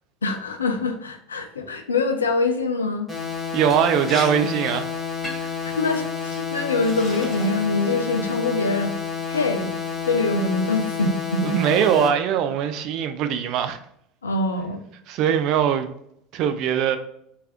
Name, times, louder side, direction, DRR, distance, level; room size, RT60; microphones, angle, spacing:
voice 1, 0.2-3.1 5.6-8.9 9.3-9.7 10.0-11.7 14.2-14.8, left 3 dB, 75° left, 0.4 m, -24 dB
sound 1, 3.1-12.1, left 6 dB, 5° right, 1.5 m, -30 dB
voice 2, 3.5-4.9 11.4-13.8 15.1-15.9 16.3-17.0, right 8 dB, 50° right, 0.3 m, -21 dB
Liquid, 3.7-4.3 4.6-4.8 5.2-5.6 6.2-6.4 6.8-7.7 8.1-8.5, equal, 10° left, 1.4 m, -36 dB
3.2 x 2.3 x 2.8 m
figure-of-eight pair, 70°, 0 cm